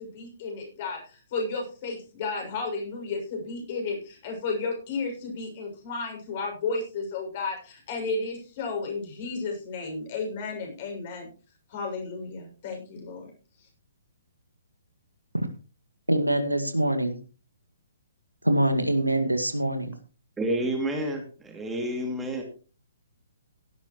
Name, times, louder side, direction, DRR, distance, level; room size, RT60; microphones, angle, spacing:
voice 1, 0.0-11.3 11.7-13.3, left 4 dB, 40° left, 6.7 m, -33 dB
voice 2, 16.1-17.2 18.4-20.0, right 1 dB, 85° right, 2.0 m, -24 dB
voice 3, 20.4-22.4, right 1 dB, 10° right, 2.6 m, -29 dB
17.0 x 12.0 x 3.1 m
figure-of-eight pair, 125°, 0 cm